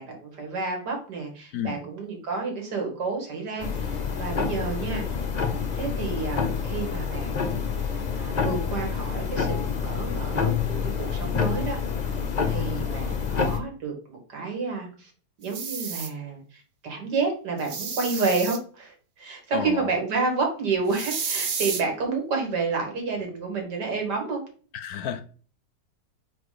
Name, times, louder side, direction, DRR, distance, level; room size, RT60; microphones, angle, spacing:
voice 1, 0.0-5.1 5.7-7.6 8.1-11.8 12.4-15.1 15.4-24.4, right 4 dB, 75° right, 2.3 m, -30 dB
sound 1, 3.6-13.6, left 6 dB, 40° left, 0.6 m, -27 dB
sound 2, 15.4-16.1 17.6-18.6 20.9-21.8, right 6 dB, 60° right, 0.5 m, -31 dB
voice 2, 19.5-20.0 24.7-25.2, left 9 dB, 70° left, 1.0 m, -31 dB
4.5 x 4.4 x 4.9 m
omnidirectional pair, 1.8 m